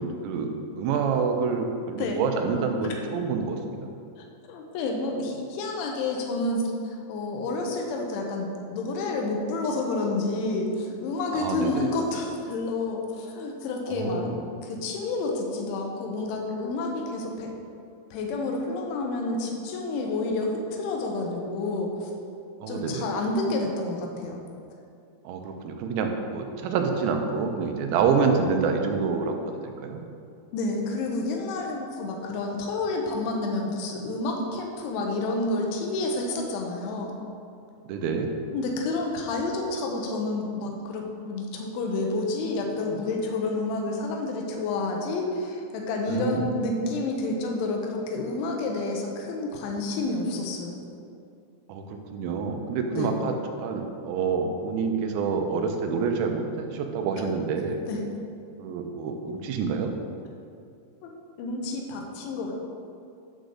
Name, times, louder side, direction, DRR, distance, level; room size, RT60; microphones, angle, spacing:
voice 1, 0.0-3.9 11.3-11.9 13.9-14.4 22.6-23.1 25.2-30.0 37.9-38.3 46.1-46.5 51.7-57.8 58.6-59.9, right 5 dB, 80° right, 4 dB, 3.0 m, -27 dB
voice 2, 4.2-17.5 18.1-22.1 22.7-24.4 30.5-37.2 38.5-50.7 52.9-53.1 57.9-58.1 61.0-61.1 61.4-62.6, left 2 dB, 85° left, 1 dB, 3.4 m, -29 dB
10.5 x 3.8 x 6.5 m, 2.4 s
omnidirectional pair, 5.3 m